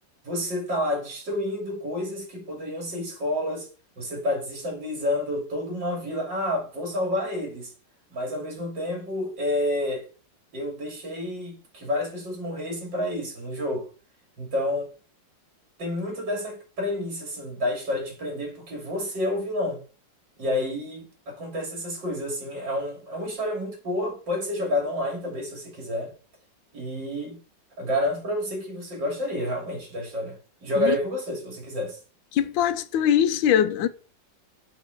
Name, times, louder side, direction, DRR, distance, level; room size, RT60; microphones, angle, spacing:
voice 1, 0.2-3.7 4.0-7.7 8.1-10.1 10.5-13.9 14.4-14.9 15.8-19.8 20.4-26.1 26.7-27.4 27.8-32.0, left 1 dB, 75° right, 3.5 m, -29 dB
voice 2, 32.3-33.9, left 9 dB, 90° left, 1.3 m, -22 dB
7.1 x 3.7 x 5.8 m
omnidirectional pair, 2.0 m